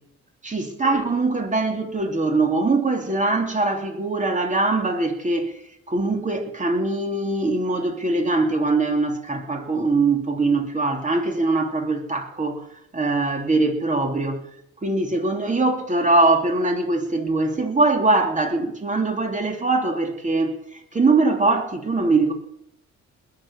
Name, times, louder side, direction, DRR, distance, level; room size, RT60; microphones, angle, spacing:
voice 1, 0.4-5.5 5.9-12.7 12.9-14.4 14.8-22.3, right 3 dB, 25° right, 3.0 m, -22 dB
20.5 x 8.1 x 6.4 m
cardioid pair, 90°, 30 cm